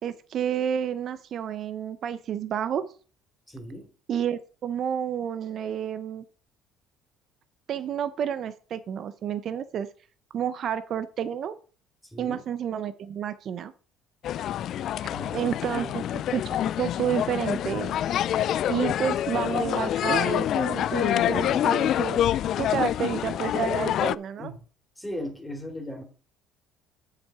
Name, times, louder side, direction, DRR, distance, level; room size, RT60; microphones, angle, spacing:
voice 1, 0.0-2.9 4.1-6.2 7.7-9.9 10.3-11.6 12.2-13.7 15.3-16.0 16.3-18.0 18.7-24.5, right 9 dB, 55° right, 12 dB, 0.7 m, -30 dB
voice 2, 3.5-3.9 12.0-12.4 15.1-16.0 24.4-24.5 25.0-26.0, left 1 dB, 10° left, 3 dB, 2.8 m, -37 dB
sound 1, 14.2-24.1, left 11 dB, 60° left, 0.3 m, -26 dB
7.5 x 7.4 x 4.7 m, 0.40 s
hypercardioid pair, 70°, 0 cm